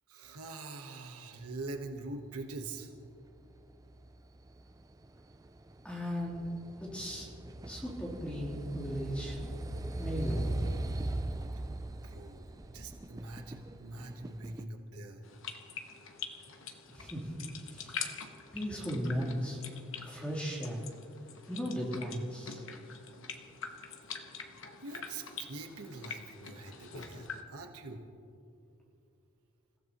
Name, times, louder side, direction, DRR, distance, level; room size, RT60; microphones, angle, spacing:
voice 1, 0.1-2.9 12.0-15.2 24.8-28.0, right 2 dB, 80° right, 3 dB, 1.4 m, -44 dB
sound 1, 3.3-14.6, right 1 dB, 15° right, 0.4 m, -40 dB
voice 2, 5.8-6.4 6.8-7.3 7.6-9.4 10.0-10.6 16.9-17.2 17.7-17.9 18.5-19.6 20.1-20.8 21.5-22.6, equal, 5° left, -5 dB, 3.5 m, -36 dB
sound 2, 15.2-27.4, left 6 dB, 55° left, 1.1 m, -45 dB
29.0 x 15.5 x 3.1 m, 2.6 s
head